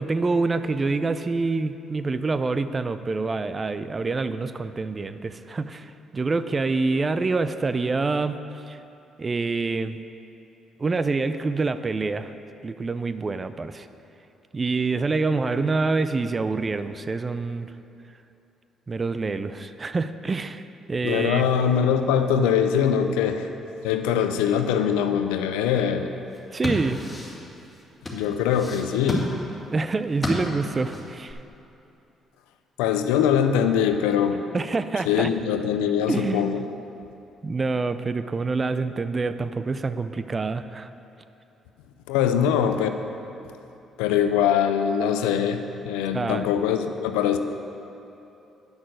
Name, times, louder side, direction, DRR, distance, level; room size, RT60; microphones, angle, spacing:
voice 1, 0.0-8.4 8.7-8.8 9.2-10.0 10.8-12.3 12.6-13.9 14.5-17.7 18.9-21.4 26.5-27.0 29.7-31.4 34.5-35.3 36.1-36.6 37.4-40.9 46.1-46.5, right 3 dB, 35° right, 12 dB, 0.5 m, -26 dB
voice 2, 21.0-23.5 23.8-26.1 28.1-29.3 32.8-34.4 35.1-36.7 42.1-42.9 44.0-47.4, left 8 dB, 85° left, 8 dB, 0.5 m, -22 dB
sound 1, 26.2-31.3, left 1 dB, 15° left, 2.3 m, -32 dB
9.6 x 6.0 x 6.4 m, 2.8 s
supercardioid pair, 55°, 0 cm